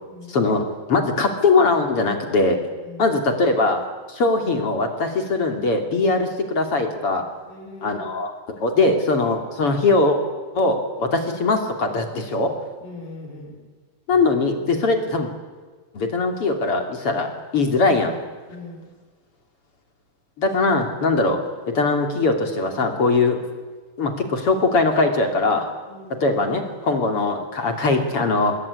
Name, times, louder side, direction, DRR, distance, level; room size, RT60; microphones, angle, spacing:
voice 1, 0.3-0.6 0.9-2.6 3.0-3.8 4.1-7.2 7.8-8.3 8.6-10.2 10.5-12.5 14.1-15.3 15.9-18.2 20.4-21.4 21.7-23.4 24.0-25.7 26.2-28.6, left 3 dB, 35° left, 5 dB, 3.0 m, -21 dB
voice 2, 7.5-8.1 12.8-13.6 18.5-18.9 25.9-26.1, left 2 dB, 65° left, 2 dB, 8.6 m, -39 dB
25.5 x 21.0 x 9.9 m, 1.4 s
omnidirectional pair, 5.0 m